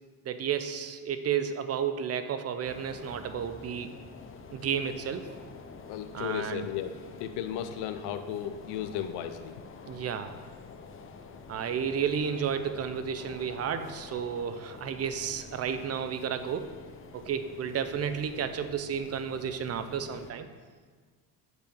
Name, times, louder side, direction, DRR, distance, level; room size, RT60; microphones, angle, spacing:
voice 1, 0.3-3.9 4.5-5.3 6.1-6.7 9.9-10.4 11.5-16.7 17.1-20.5, right 7 dB, 40° right, 10 dB, 0.5 m, -32 dB
sound 1, 2.6-20.3, left 5 dB, 35° left, 0.6 m, -48 dB
voice 2, 5.8-6.9 7.2-9.5, left 10 dB, 80° left, 9 dB, 0.6 m, -35 dB
7.8 x 4.7 x 5.3 m, 1.5 s
cardioid pair, 115°, 39 cm